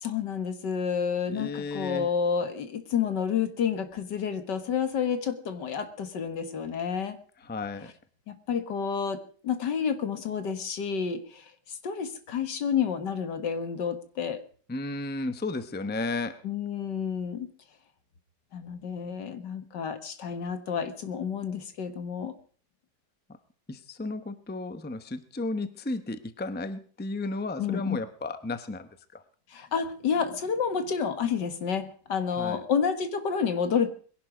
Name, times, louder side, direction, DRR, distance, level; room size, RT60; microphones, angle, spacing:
voice 1, 0.0-7.2 8.3-14.4 16.4-17.5 18.5-22.3 27.6-28.0 29.5-33.9, left 7 dB, 80° left, 10 dB, 2.1 m, -30 dB
voice 2, 1.3-2.1 7.4-7.9 14.7-16.4 23.7-29.2 32.3-32.6, left 2 dB, 10° left, 11 dB, 0.6 m, -34 dB
22.0 x 11.0 x 5.0 m, 0.43 s
omnidirectional pair, 1.9 m